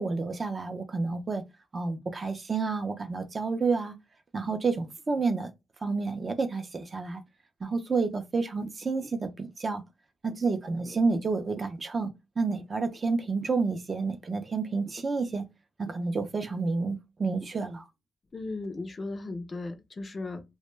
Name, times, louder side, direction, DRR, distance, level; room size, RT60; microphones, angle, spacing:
voice 1, 0.0-1.4 1.7-4.0 4.3-5.5 5.8-7.2 7.6-9.8 10.2-15.5 15.8-17.8, right 4 dB, 35° right, 0.4 m, -30 dB
voice 2, 18.3-20.4, left 2 dB, 30° left, 0.4 m, -36 dB
2.1 x 2.1 x 3.1 m
cardioid pair, 115°, 0 cm